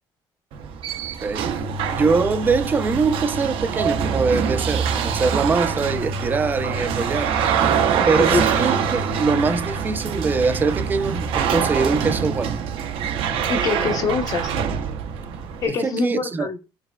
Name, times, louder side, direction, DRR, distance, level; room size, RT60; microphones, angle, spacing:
sound 1, 0.5-15.7, right 7 dB, 70° right, 0.6 m, -24 dB
voice 1, 1.9-7.4 8.1-12.6 15.7-16.5, right 4 dB, 20° right, 0.4 m, -23 dB
voice 2, 7.9-8.4 13.5-14.5 15.6-16.6, left 5 dB, 40° left, 0.7 m, -24 dB
4.9 x 3.2 x 2.2 m
cardioid pair, 175°, 10 cm